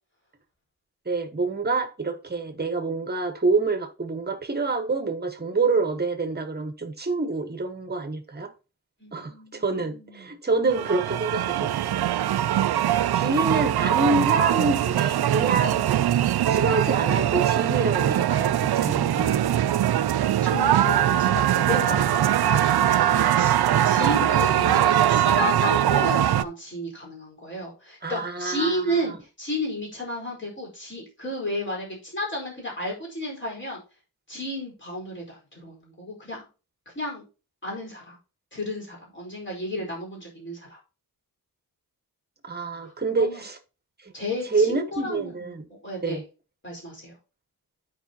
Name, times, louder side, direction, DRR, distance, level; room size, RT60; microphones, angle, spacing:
voice 1, 1.0-8.5 9.1-12.0 13.1-16.0 16.5-19.4 24.0-24.1 28.0-29.0 42.4-43.6 44.0-44.1 44.5-45.6 46.0-46.2, right 3 dB, 25° right, 1.3 m, -27 dB
voice 2, 9.0-10.3 13.1-13.4 20.4-33.8 34.3-36.5 36.9-37.2 37.6-38.2 38.5-40.8 43.2-43.4 44.1-46.2 46.6-47.2, left 1 dB, 30° left, 4.5 m, -33 dB
sound 1, 10.7-26.4, right 11 dB, 80° right, 0.5 m, -22 dB
12.5 x 5.0 x 2.8 m
wide cardioid pair, 160°, 38 cm